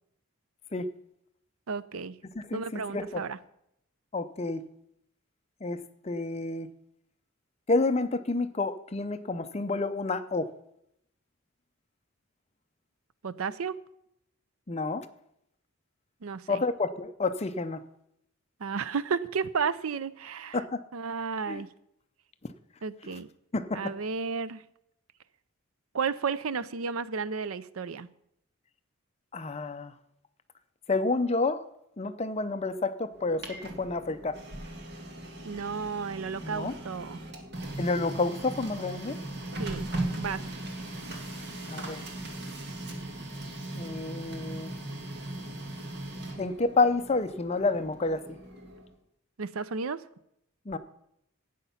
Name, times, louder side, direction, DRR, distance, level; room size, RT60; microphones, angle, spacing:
voice 1, 1.7-2.1 2.5-3.4 13.2-13.7 16.2-16.6 18.6-20.6 20.9-21.7 22.8-23.3 23.7-24.6 25.9-28.1 35.4-37.2 39.6-40.6 49.4-50.0, right 5 dB, 80° right, 17 dB, 0.6 m, -33 dB
voice 2, 2.4-3.2 4.1-4.6 5.6-6.7 7.7-10.5 14.7-15.1 16.5-17.8 20.5-20.8 21.5-21.6 23.1-23.2 23.5-23.9 29.3-29.9 30.9-31.6 32.0-34.4 36.4-36.8 37.8-39.2 41.7-42.1 43.7-44.7 46.4-48.2 50.7-50.8, left 3 dB, 30° left, 11 dB, 0.6 m, -29 dB
Printer, 33.1-48.9, right 1 dB, 50° right, 1.8 m, -39 dB
12.0 x 9.2 x 5.7 m, 0.78 s
head